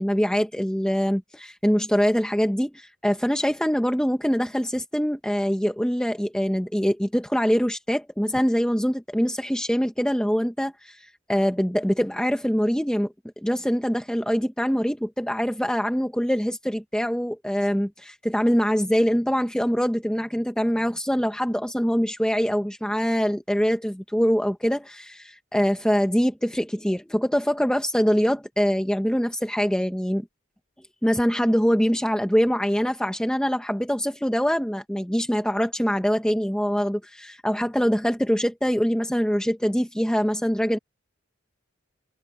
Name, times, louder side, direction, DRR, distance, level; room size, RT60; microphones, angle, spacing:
voice 1, 0.0-30.3 31.0-40.8, equal, 5° left, 1.1 m, -24 dB
head